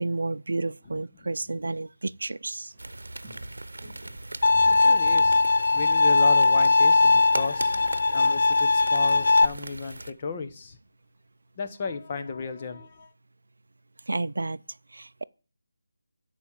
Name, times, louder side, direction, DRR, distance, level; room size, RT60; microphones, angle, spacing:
voice 1, 0.0-2.7 14.1-14.6 14.9-15.2, right 2 dB, 70° right, 0.4 m, -31 dB
Walk footsteps, 2.4-6.8 7.0-7.4 7.7-10.0 10.3-10.4, equal, 15° right, 2.6 m, -49 dB
sound 1, 2.8-10.1, right 2 dB, 85° right, 0.8 m, -39 dB
Bowed string instrument, 4.4-9.5, left 3 dB, 50° left, 0.4 m, -20 dB
voice 2, 4.7-7.8 8.1-10.8 11.6-13.1, left 4 dB, 25° left, 0.9 m, -34 dB
10.5 x 4.6 x 7.2 m
figure-of-eight pair, 165°, 0 cm